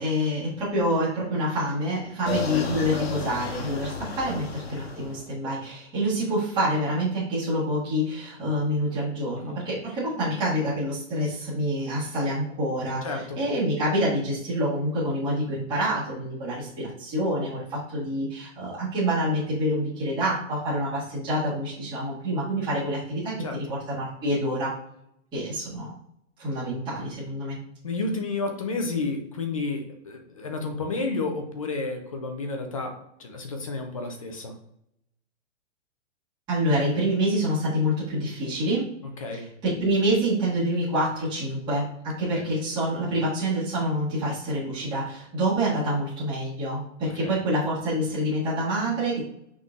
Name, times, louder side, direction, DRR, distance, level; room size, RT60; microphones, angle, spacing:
voice 1, 0.0-24.7 25.3-25.9 26.4-27.6 36.5-38.9 39.3-49.2, equal, 10° right, -11 dB, 1.3 m, -27 dB
sound 1, 2.2-5.3, left 4 dB, 55° left, 1.0 m, -33 dB
voice 2, 13.0-13.4 23.4-23.6 27.8-32.9 33.2-34.5 39.2-39.4 42.3-42.5 47.2-47.3, left 3 dB, 30° left, 5 dB, 0.4 m, -31 dB
5.6 x 3.6 x 2.4 m, 0.75 s
hypercardioid pair, 170°, 38 cm